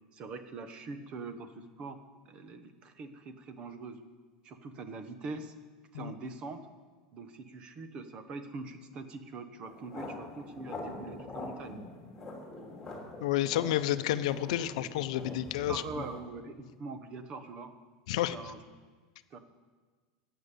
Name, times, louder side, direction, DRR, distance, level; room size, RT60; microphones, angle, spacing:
voice 1, 0.1-2.0 2.3-4.0 4.4-5.5 5.9-6.6 7.1-11.8 15.6-17.7 18.3-18.6 19.3-19.4, right 3 dB, 25° right, 10 dB, 1.0 m, -43 dB
sound 1, 9.6-16.2, left 2 dB, 5° left, 3.1 m, -44 dB
voice 2, 13.2-15.8 18.1-18.4, left 13 dB, 65° left, 12 dB, 0.7 m, -30 dB
15.0 x 9.1 x 6.8 m, 1.4 s
supercardioid pair, 175°, 4 cm